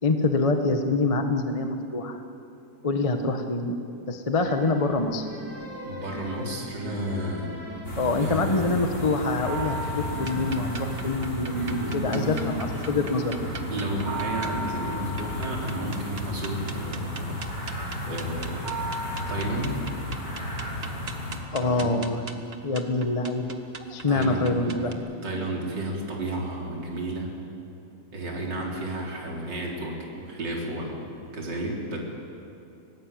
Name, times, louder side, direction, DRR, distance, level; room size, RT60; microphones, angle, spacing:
voice 1, 0.0-2.2 2.8-3.8 4.1-5.2 8.0-13.4 21.5-22.2 22.6-23.6 23.9-24.9, left 3 dB, 50° left, 5 dB, 0.4 m, -25 dB
sound 1, 4.4-12.9, equal, 5° right, 3.7 m, -41 dB
voice 2, 5.8-7.6 8.2-8.7 9.8-9.9 11.7-12.3 13.7-17.5 18.1-18.7 19.3-19.8 21.6-22.0 24.1-24.9 25.2-27.3 28.1-30.0 30.2-31.1 31.3-32.0, right 1 dB, 35° right, -2 dB, 4.4 m, -32 dB
sound 2, 7.8-21.4, equal, 35° left, 5.6 m, -33 dB
sound 3, 10.2-24.9, right 4 dB, 90° right, 0.5 m, -42 dB
24.5 x 19.5 x 9.3 m, 2.7 s
omnidirectional pair, 3.4 m